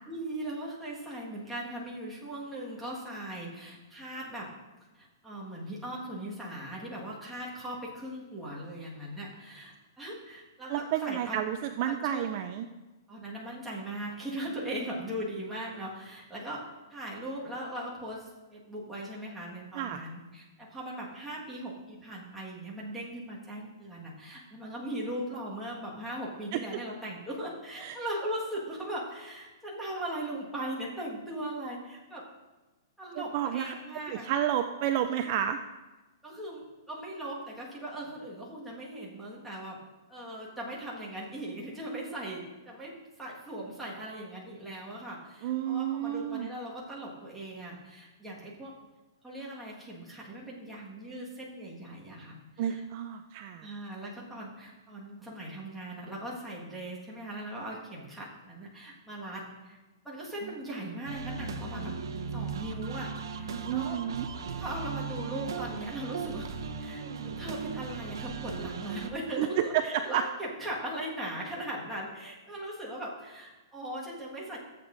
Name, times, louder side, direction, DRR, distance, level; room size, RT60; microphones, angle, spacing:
voice 1, 0.1-4.5 4.9-11.4 11.9-12.3 13.1-32.3 33.0-34.3 36.2-39.8 40.1-48.7 49.2-52.8 53.6-59.8 60.0-62.0 62.3-64.0 64.6-74.6, right 1 dB, ahead, -6 dB, 1.6 m, -39 dB
voice 2, 10.7-12.7 19.7-20.0 26.5-26.6 27.8-28.0 33.2-33.7 34.1-35.6 45.4-46.5 52.6-53.7 60.4-60.5 63.6-64.3 69.4-70.2, right 10 dB, 35° right, 8 dB, 0.3 m, -30 dB
sound 1, 61.0-69.1, right 5 dB, 85° right, 0.8 m, -37 dB
14.0 x 8.0 x 2.6 m, 1.1 s
hypercardioid pair, 165°, 2 cm